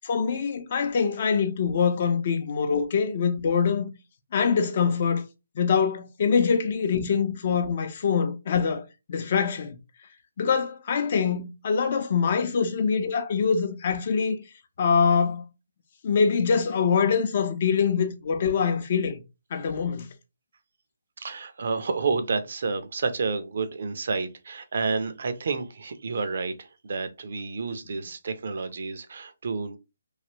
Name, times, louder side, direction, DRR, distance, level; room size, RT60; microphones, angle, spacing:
voice 1, 0.0-3.9 4.3-5.2 5.6-8.8 9.1-9.8 10.4-14.4 14.8-15.4 16.0-19.2 19.5-20.1, left 6 dB, 40° left, 0.6 m, -24 dB
voice 2, 21.2-29.8, right 4 dB, 55° right, 0.6 m, -30 dB
3.2 x 2.5 x 2.9 m
hypercardioid pair, 160°, 0 cm